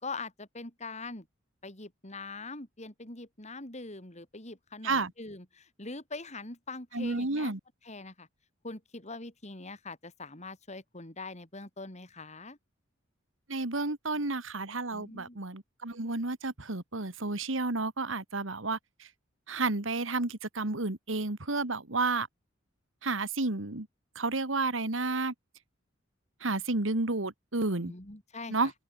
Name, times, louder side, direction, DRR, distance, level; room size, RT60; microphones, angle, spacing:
voice 1, 0.0-1.3 1.6-7.5 7.8-8.3 8.6-12.6 14.9-15.4 27.8-28.5, left 3 dB, 35° left, 4.3 m, -43 dB
voice 2, 6.9-7.6 13.5-19.1 19.5-22.3 23.0-23.9 24.2-25.3 26.4-27.9 28.5-28.7, right 3 dB, 80° right, 2.2 m, -31 dB
open air
head